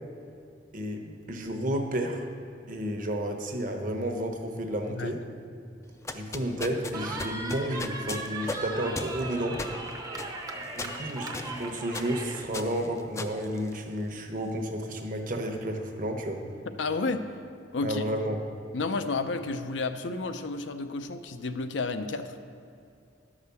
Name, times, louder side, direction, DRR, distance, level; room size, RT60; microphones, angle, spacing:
voice 1, 0.7-2.3 2.7-5.2 6.1-9.6 10.8-16.4 17.8-18.4, right 1 dB, 45° right, 4 dB, 0.9 m, -31 dB
sound 1, 5.9-14.3, left 2 dB, 15° left, 0.4 m, -39 dB
Cheering, 6.9-12.4, right 2 dB, 20° right, 0.7 m, -38 dB
voice 2, 16.8-17.2 17.7-18.0 18.7-22.3, left 3 dB, 80° left, 9 dB, 0.6 m, -31 dB
11.0 x 5.0 x 6.9 m, 2.4 s
head